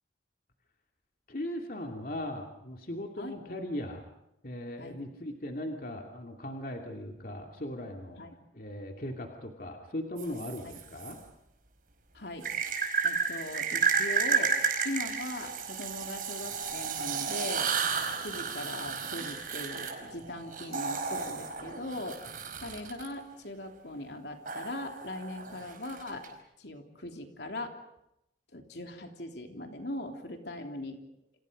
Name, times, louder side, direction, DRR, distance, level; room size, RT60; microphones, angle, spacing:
voice 1, 1.3-4.0 4.4-8.2 8.6-11.2, left 1 dB, 50° left, 2 dB, 2.7 m, -38 dB
sound 1, 10.2-11.1 12.4-23.1 24.5-26.3, right 5 dB, 50° right, 5.1 m, -32 dB
voice 2, 12.1-12.5 13.0-17.7 18.2-22.3 22.6-26.3 26.6-27.7 28.5-31.0, left 1 dB, 70° left, 4 dB, 3.2 m, -40 dB
29.5 x 27.5 x 5.3 m, 0.83 s
head